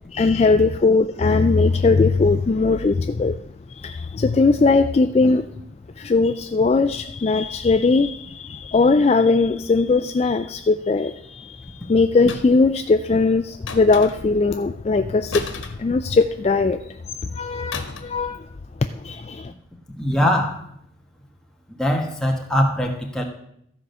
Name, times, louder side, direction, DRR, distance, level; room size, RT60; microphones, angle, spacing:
voice 1, 0.1-3.4 3.7-5.5 6.0-18.5 18.8-19.5, left 3 dB, 30° left, 9 dB, 0.3 m, -19 dB
sound 1, 12.3-12.7 13.7-14.4 15.3-16.5 17.7-18.2 18.5-18.7, left 4 dB, 85° left, 1.3 m, -34 dB
voice 2, 20.0-20.6 21.7-23.2, equal, 5° left, 0 dB, 1.3 m, -21 dB
14.0 x 4.9 x 6.7 m, 0.72 s
head